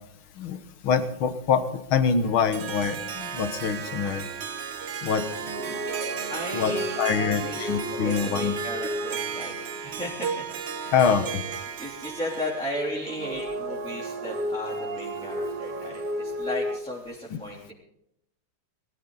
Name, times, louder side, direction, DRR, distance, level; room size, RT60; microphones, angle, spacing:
voice 1, 0.8-4.3 5.0-5.2 5.7-5.8 6.5-8.6 10.9-11.4, left 6 dB, 70° left, 10 dB, 2.1 m, -25 dB
Harp, 2.2-12.8, right 7 dB, 75° right, 0.5 m, -35 dB
sound 1, 5.1-10.2 12.7-16.8, right 1 dB, 30° right, 0.9 m, -33 dB
voice 2, 6.3-10.4 10.7-11.2 11.8-17.7, equal, 5° left, -5 dB, 3.3 m, -35 dB
21.5 x 14.5 x 4.0 m, 0.77 s
omnidirectional pair, 2.4 m